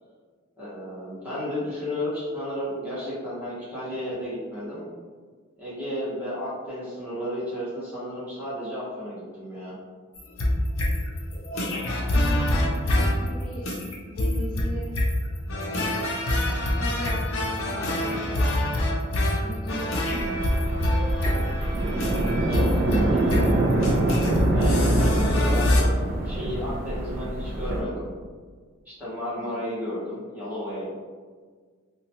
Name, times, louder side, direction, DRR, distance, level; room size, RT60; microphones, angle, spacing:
voice 1, 0.6-4.9 5.6-9.8 22.5-23.6 24.5-26.0 26.2-28.1 28.8-30.8, equal, 10° right, -11 dB, 1.0 m, -33 dB
sound 1, 10.1-25.8, left 1 dB, 65° left, 0.5 m, -25 dB
voice 2, 12.1-13.6 14.1-14.9 16.8-18.6 19.4-20.5 29.3-29.7, equal, 15° left, -10 dB, 1.2 m, -37 dB
sound 2, 20.1-27.8, right 2 dB, 40° right, 0.3 m, -25 dB
2.9 x 2.1 x 2.8 m, 1.6 s
head